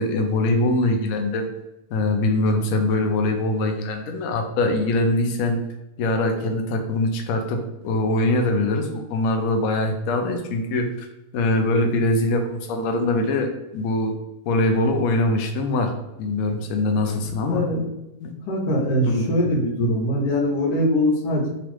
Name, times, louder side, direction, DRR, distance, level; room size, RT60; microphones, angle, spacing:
voice 1, 0.0-1.5 1.9-5.6 6.0-11.1 11.3-14.1 14.4-15.9 16.2-17.6 18.2-18.3 19.1-19.3, left 2 dB, 70° left, 4 dB, 0.8 m, -22 dB
voice 2, 17.5-17.9 18.5-21.5, equal, 90° left, -2 dB, 1.3 m, -22 dB
3.0 x 2.4 x 3.0 m, 0.94 s
omnidirectional pair, 1.7 m